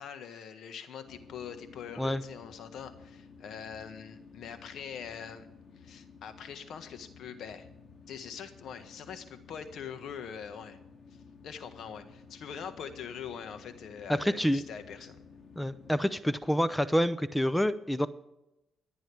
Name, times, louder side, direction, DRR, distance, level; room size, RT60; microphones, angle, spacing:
voice 1, 0.0-5.5 5.8-7.7 8.1-10.8 11.4-15.2, left 7 dB, 70° left, 9 dB, 1.6 m, -43 dB
sound 1, 1.0-15.9, left 5 dB, 50° left, 2.6 m, -54 dB
voice 2, 14.1-14.6 15.6-18.1, equal, 5° left, 14 dB, 0.7 m, -27 dB
25.5 x 8.9 x 3.5 m, 0.92 s
cardioid pair, 90°, 0 cm